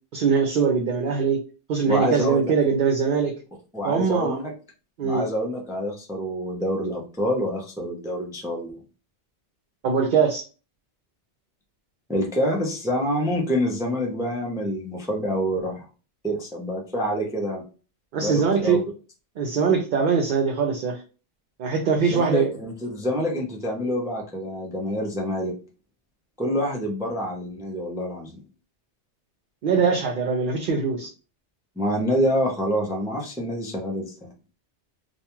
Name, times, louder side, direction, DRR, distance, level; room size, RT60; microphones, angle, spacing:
voice 1, 0.1-1.4 1.7-3.4 3.8-4.4 5.0-5.2 9.8-10.4 18.1-18.8 19.4-21.0 21.6-22.5 29.6-31.1, right 5 dB, 60° right, 2 dB, 0.6 m, -22 dB
voice 2, 1.9-2.5 3.7-4.5 5.0-8.7 12.1-15.8 16.2-17.6 18.2-18.8 22.0-25.5 26.4-28.3 31.8-34.3, equal, 5° right, -1 dB, 0.3 m, -27 dB
2.4 x 2.2 x 2.9 m, 0.34 s
omnidirectional pair, 1.2 m